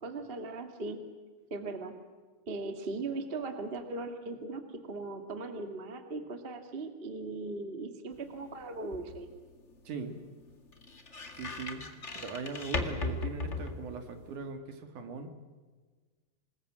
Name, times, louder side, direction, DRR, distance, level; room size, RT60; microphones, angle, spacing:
voice 1, 0.0-1.0 1.5-1.9 2.4-9.3, right 3 dB, 25° right, 7 dB, 1.2 m, -39 dB
sound 1, 8.1-14.4, left 2 dB, 30° left, 1.3 m, -39 dB
voice 2, 9.8-10.2 11.3-11.9 12.1-15.3, right 4 dB, 60° right, 7 dB, 3.2 m, -40 dB
27.0 x 20.5 x 7.5 m, 1.4 s
omnidirectional pair, 4.4 m